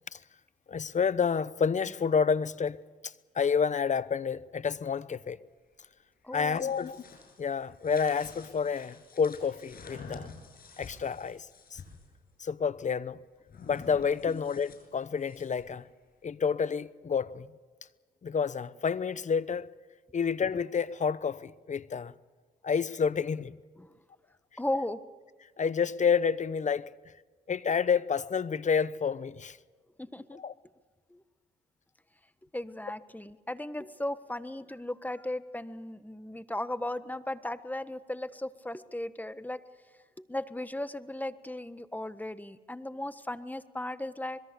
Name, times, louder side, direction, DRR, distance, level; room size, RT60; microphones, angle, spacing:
voice 1, 0.7-2.8 3.3-5.4 6.3-7.0 7.4-10.3 10.8-11.4 11.7-11.8 12.4-13.2 13.6-15.8 16.2-17.5 18.2-19.7 20.1-22.1 22.6-23.5 25.6-26.9 27.5-29.6 30.4-30.5, left 6 dB, 45° left, 0.9 m, -29 dB
voice 2, 6.2-6.7 14.3-14.4 23.8-23.9 24.6-25.0 30.0-30.4 31.1-31.2 32.5-39.6 40.2-44.4, left 1 dB, 10° left, 1.4 m, -36 dB
sound 1, 6.3-12.1 13.5-15.7, left 4 dB, 60° left, 7.4 m, -49 dB
25.5 x 22.0 x 6.9 m
supercardioid pair, 60°, 17 cm